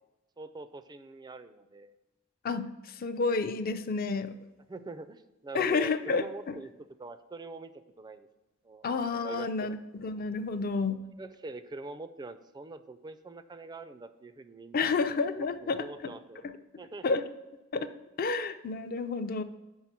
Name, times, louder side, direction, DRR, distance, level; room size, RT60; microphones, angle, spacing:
voice 1, 0.4-2.0 4.7-8.3 8.6-8.8 9.2-9.8 11.2-14.9 15.4-16.4 16.8-17.2, right 3 dB, 20° right, 11 dB, 0.3 m, -44 dB
voice 2, 2.4-4.3 5.5-6.6 8.8-11.0 14.7-16.1 16.4-16.5 17.0-17.2 17.7-17.9 18.2-19.4, left 4 dB, 45° left, 10 dB, 0.4 m, -30 dB
5.6 x 4.9 x 5.9 m, 1.0 s
head